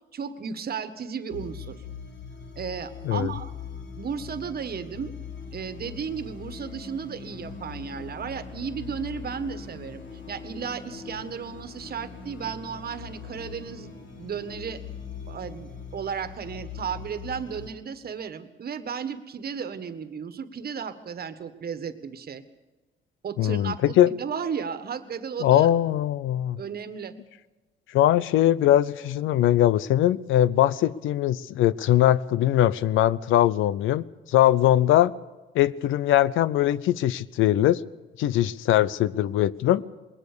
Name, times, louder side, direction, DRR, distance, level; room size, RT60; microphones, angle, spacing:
voice 1, 0.1-1.8 2.6-3.5 4.0-5.1 5.5-10.0 10.3-13.9 14.2-14.8 15.3-22.4 23.2-25.7 26.6-27.1, right 6 dB, 50° right, 11 dB, 1.6 m, -34 dB
sound 1, 1.3-17.7, left 6 dB, 65° left, 3.1 m, -41 dB
voice 2, 23.4-24.1 25.4-26.6 27.9-35.1 35.5-37.8 38.2-39.8, left 12 dB, 85° left, 19 dB, 0.6 m, -21 dB
21.0 x 19.0 x 6.8 m, 1.2 s
cardioid pair, 90°, 20 cm